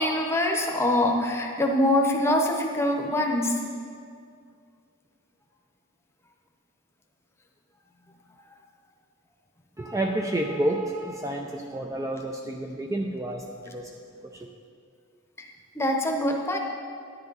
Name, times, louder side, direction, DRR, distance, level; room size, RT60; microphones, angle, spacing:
voice 1, 0.0-3.6 15.4-15.5 15.7-16.6, left 1 dB, 10° left, 2 dB, 0.9 m, -24 dB
voice 2, 9.8-13.9, right 1 dB, 15° right, 2 dB, 0.4 m, -29 dB
10.5 x 10.5 x 4.0 m, 2.3 s
head